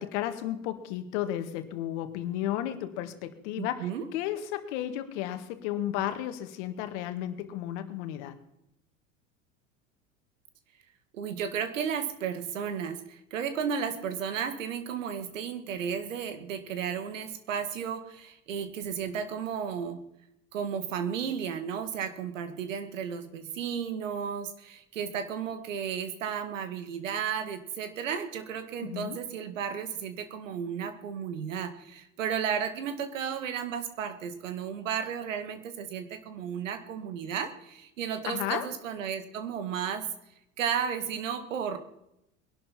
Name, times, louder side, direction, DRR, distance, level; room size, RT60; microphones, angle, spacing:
voice 1, 0.0-8.4 28.8-29.2 38.2-38.7, left 12 dB, 65° left, 9 dB, 1.9 m, -33 dB
voice 2, 3.6-4.0 11.1-20.0 20.5-40.1 40.6-41.8, right 7 dB, 80° right, 9 dB, 2.1 m, -33 dB
21.5 x 11.5 x 4.4 m, 0.83 s
hypercardioid pair, 80°, 38 cm